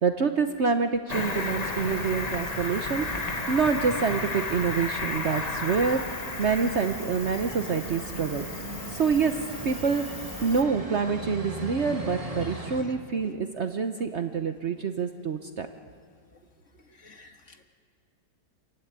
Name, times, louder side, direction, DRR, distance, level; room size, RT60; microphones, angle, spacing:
voice 1, 0.0-3.1 3.5-6.0 6.4-8.5 8.9-9.3 9.6-15.7, right 5 dB, 50° right, 7 dB, 1.0 m, -27 dB
Cricket, 1.1-10.6, left 3 dB, 25° left, 1.3 m, -34 dB
sound 1, 1.4-12.8, right 1 dB, 20° right, 2.2 m, -39 dB
voice 2, 16.9-17.6, left 3 dB, 50° left, 5 dB, 1.8 m, -53 dB
28.0 x 15.0 x 9.4 m, 2.3 s
omnidirectional pair, 1.8 m